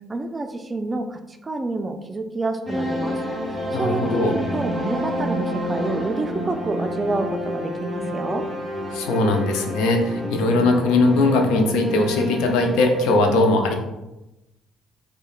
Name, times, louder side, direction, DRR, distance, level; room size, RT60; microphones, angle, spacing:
voice 1, 0.1-8.4, right 2 dB, 25° right, 7 dB, 0.4 m, -28 dB
sound 1, 2.7-13.2, equal, 5° right, 1.1 m, -29 dB
voice 2, 3.7-4.3 8.9-13.7, left 2 dB, 75° left, 4 dB, 0.4 m, -20 dB
4.7 x 2.1 x 2.4 m, 0.97 s
hypercardioid pair, 55°, 0 cm